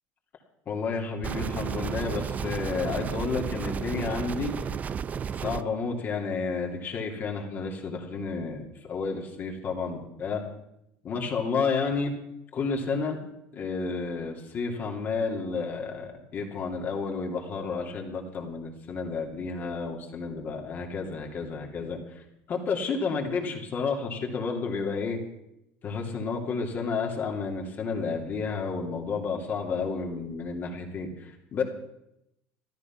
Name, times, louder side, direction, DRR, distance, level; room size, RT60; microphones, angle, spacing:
voice 1, 0.7-4.7 5.3-10.4 11.0-12.2 12.5-13.2 13.5-22.2 22.5-25.2 25.8-31.6, left 4 dB, 40° left, 1 dB, 2.8 m, -31 dB
sound 1, 1.2-5.6, right 7 dB, 30° right, 0.5 m, -32 dB
13.5 x 12.5 x 5.9 m, 0.82 s
supercardioid pair, 115°, 5 cm